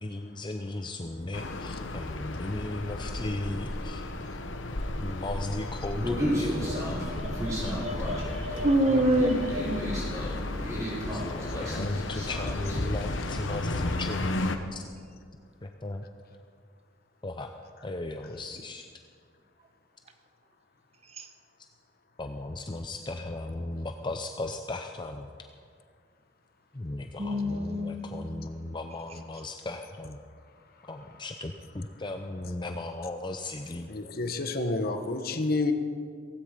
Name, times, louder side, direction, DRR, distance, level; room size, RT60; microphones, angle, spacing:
voice 1, 0.0-4.1 5.0-6.8 11.2-14.3 14.7-14.8 15.6-16.0 17.2-17.5 17.8-18.9 22.2-25.3 26.7-30.2 30.9-33.9, left 2 dB, 25° left, 5 dB, 0.7 m, -36 dB
sound 1, 1.3-14.6, left 2 dB, 80° left, 1.1 m, -34 dB
Human voice, 6.0-12.8, equal, 20° right, 5.1 m, -33 dB
voice 2, 6.5-10.1 21.2-21.3 27.2-28.4, right 1 dB, 35° right, 8 dB, 1.1 m, -28 dB
voice 3, 33.9-35.7, left 2 dB, 55° left, 7 dB, 1.2 m, -30 dB
17.0 x 16.0 x 5.1 m, 2.1 s
head